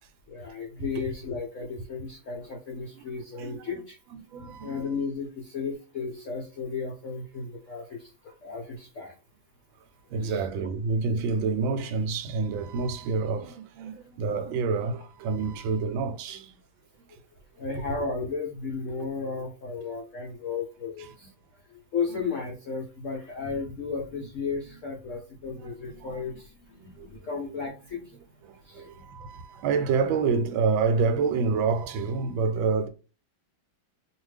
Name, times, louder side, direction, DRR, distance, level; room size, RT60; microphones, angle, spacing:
voice 1, 0.3-4.0 4.3-9.1 10.2-10.4 13.8-14.0 14.4-14.5 17.6-21.3 21.7-28.2 28.6-28.9, left 5 dB, 65° left, 0.7 m, -34 dB
voice 2, 4.1-4.8 10.1-16.5 26.0-26.1 26.8-27.1 28.4-32.9, right 4 dB, 85° right, 1.4 m, -28 dB
2.8 x 2.5 x 3.2 m
omnidirectional pair, 2.1 m